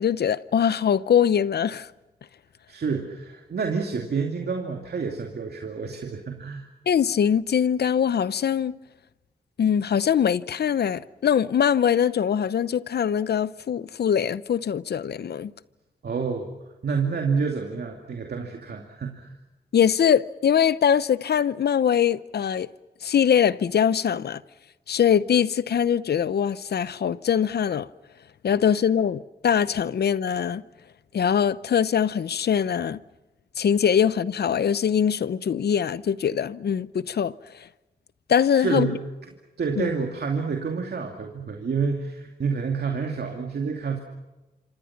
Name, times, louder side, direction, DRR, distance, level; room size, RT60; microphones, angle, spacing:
voice 1, 0.0-1.9 6.9-8.8 9.6-15.5 19.7-22.7 23.0-24.4 24.9-27.9 28.4-30.6 31.1-33.0 33.6-37.3 38.3-38.9 39.8-39.9, left 8 dB, 75° left, 0.7 m, -22 dB
voice 2, 2.7-6.7 16.0-16.5 16.8-19.3 38.5-39.1 39.6-44.0, right 5 dB, 75° right, 2.6 m, -28 dB
27.0 x 26.0 x 6.0 m
cardioid pair, 50°, 17 cm